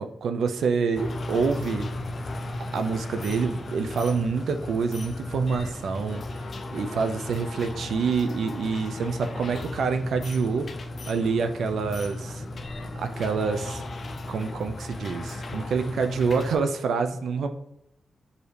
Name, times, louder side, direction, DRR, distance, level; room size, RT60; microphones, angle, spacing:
voice 1, 0.0-1.9 2.7-6.2 6.7-10.7 11.1-12.4 12.9-13.8 14.3-17.5, right 5 dB, 80° right, 7 dB, 0.4 m, -27 dB
sound 1, 1.0-16.6, left 2 dB, 50° left, 0.4 m, -35 dB
4.8 x 2.7 x 3.2 m, 0.79 s
cardioid pair, 85°, 0 cm